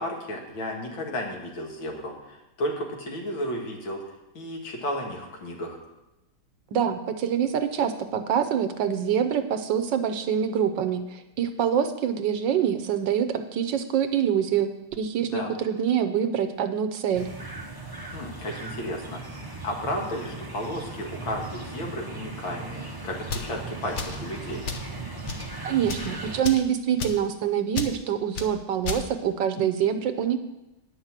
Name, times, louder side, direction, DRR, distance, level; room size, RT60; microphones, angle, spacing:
voice 1, 0.0-4.0 4.3-5.8 15.3-15.5 18.1-24.6, left 1 dB, 75° left, 0 dB, 2.6 m, -33 dB
voice 2, 6.7-14.7 15.0-17.3 25.6-30.4, right 8 dB, 70° right, 9 dB, 1.3 m, -25 dB
sound 1, 17.1-26.4, right 3 dB, 25° right, 0.5 m, -38 dB
sound 2, 23.2-23.5 23.9-24.2 24.6-24.9 25.2-25.5 25.8-26.1 26.4-26.7 27.0-27.2 27.7-27.9 28.3-28.5 28.8-29.0, left 5 dB, 50° left, 0.9 m, -32 dB
10.0 x 6.6 x 7.4 m, 0.95 s
omnidirectional pair, 2.2 m